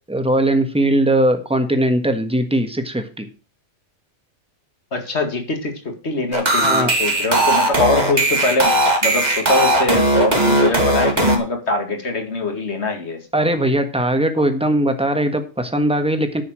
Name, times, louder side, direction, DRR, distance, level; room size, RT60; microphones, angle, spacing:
voice 1, 0.1-3.3 6.6-6.9 13.3-16.4, right 1 dB, 5° right, 7 dB, 1.4 m, -19 dB
voice 2, 4.9-8.7 9.0-13.2, left 2 dB, 65° left, 4 dB, 2.4 m, -22 dB
sound 1, 6.3-11.4, right 1 dB, 35° right, 2.2 m, -17 dB
10.0 x 6.9 x 6.4 m, 0.35 s
omnidirectional pair, 1.2 m